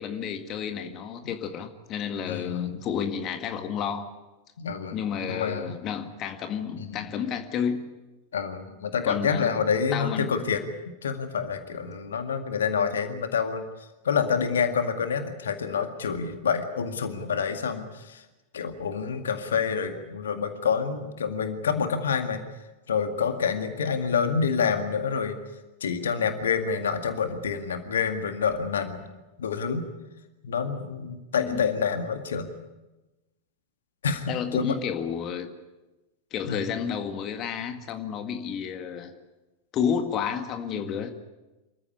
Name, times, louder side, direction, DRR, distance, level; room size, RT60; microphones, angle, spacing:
voice 1, 0.0-4.1 4.9-7.9 9.1-9.6 9.9-10.3 31.4-31.7 34.3-35.5 36.3-39.1 39.7-41.1, left 7 dB, 35° left, 6 dB, 1.8 m, -31 dB
voice 2, 2.3-2.8 4.6-5.0 5.3-5.8 6.8-7.1 8.3-10.6 11.0-13.6 14.0-18.2 18.5-22.4 22.9-25.4 25.8-29.1 29.4-29.8 30.4-32.5 34.0-34.8 36.4-36.7, left 6 dB, 65° left, 7 dB, 2.0 m, -27 dB
26.5 x 14.5 x 9.9 m, 1.1 s
figure-of-eight pair, 90°, 0 cm